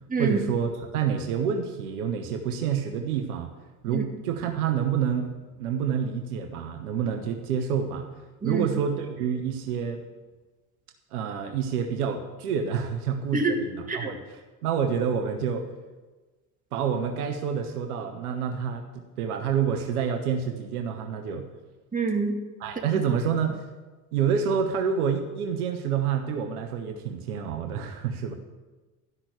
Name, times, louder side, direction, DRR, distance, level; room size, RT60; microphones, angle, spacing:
voice 1, 0.2-3.5 3.8-5.3 5.6-8.1 8.4-10.0 11.1-15.6 16.7-21.4 22.6-23.6 24.1-28.3, right 7 dB, 75° right, 5 dB, 1.1 m, -28 dB
voice 2, 13.3-14.1 21.9-22.4, right 3 dB, 20° right, 1 dB, 2.1 m, -26 dB
12.5 x 6.0 x 7.9 m, 1.2 s
hypercardioid pair, 70°, 45 cm